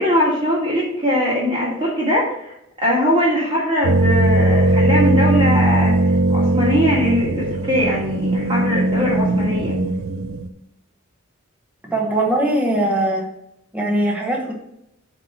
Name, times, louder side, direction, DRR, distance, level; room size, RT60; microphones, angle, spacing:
voice 1, 0.0-6.0 6.3-9.8, equal, 25° right, -5 dB, 1.6 m, -21 dB
sound 1, 3.8-10.5, right 2 dB, 85° right, 0.5 m, -19 dB
voice 2, 11.9-13.2 13.7-14.5, right 1 dB, 5° right, -1 dB, 1.1 m, -20 dB
7.6 x 3.0 x 6.0 m, 0.79 s
head